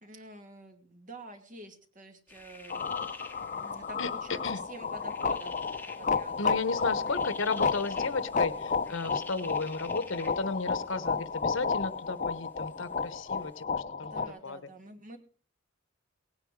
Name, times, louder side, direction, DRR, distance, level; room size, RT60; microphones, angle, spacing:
voice 1, 0.0-2.8 3.6-5.7 6.0-6.3 14.0-15.2, right 1 dB, 40° right, 6 dB, 2.3 m, -47 dB
sound 1, 2.3-13.6, left 3 dB, 10° left, 1.2 m, -50 dB
sound 2, 2.7-14.3, left 5 dB, 40° left, 0.8 m, -32 dB
voice 2, 4.0-4.6 6.4-14.1 14.4-14.6, left 3 dB, 70° left, 14 dB, 1.1 m, -34 dB
18.5 x 9.6 x 4.8 m, 0.43 s
head